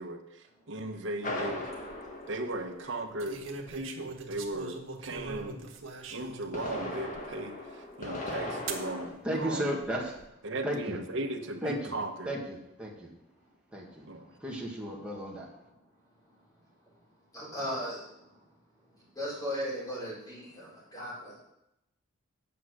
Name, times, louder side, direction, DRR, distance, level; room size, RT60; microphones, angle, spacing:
voice 1, 0.0-1.7 2.3-5.6 6.1-9.8 10.4-12.4 14.1-14.3, right 2 dB, 60° right, 4 dB, 1.2 m, -37 dB
sound 1, 1.2-3.3 6.3-9.1, left 1 dB, 40° left, 1.6 m, -38 dB
sound 2, 1.5-1.9 3.2-6.5 7.1-7.2 8.7-8.9 9.8-10.3, right 4 dB, 80° right, 1.4 m, -41 dB
voice 2, 9.2-10.1 10.6-11.0 11.6-11.9 12.3-13.1 13.7-14.0 14.4-15.5, equal, 5° right, -3 dB, 1.9 m, -34 dB
voice 3, 17.3-18.2 19.2-21.4, equal, 20° left, -6 dB, 4.1 m, -37 dB
9.1 x 5.9 x 6.4 m, 0.84 s
head